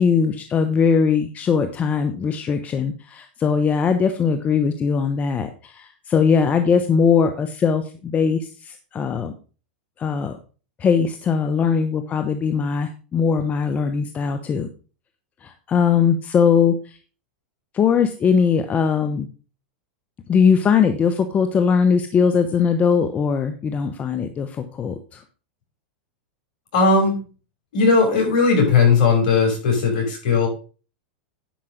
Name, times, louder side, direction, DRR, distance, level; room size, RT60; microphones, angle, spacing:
voice 1, 0.0-9.3 10.0-10.4 10.8-14.7 15.4-17.0 17.7-19.3 20.3-25.2, left 6 dB, 25° left, 8 dB, 1.0 m, -20 dB
voice 2, 26.7-27.2 27.7-30.5, left 4 dB, 65° left, 1 dB, 5.7 m, -17 dB
10.5 x 5.7 x 5.0 m, 0.35 s
hypercardioid pair, 110°, 5 cm